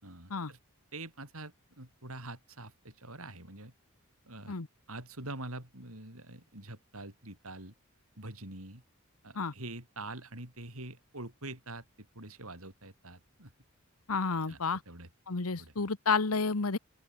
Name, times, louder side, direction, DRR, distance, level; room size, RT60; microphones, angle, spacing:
voice 1, 0.0-0.6 0.9-3.7 4.3-4.5 4.9-7.7 8.2-8.8 9.2-13.5 14.1-14.6 14.9-15.1 15.5-15.7, right 2 dB, 80° right, 7.7 m, -45 dB
voice 2, 14.1-14.8 15.3-16.8, left 4 dB, 85° left, 1.2 m, -30 dB
open air
head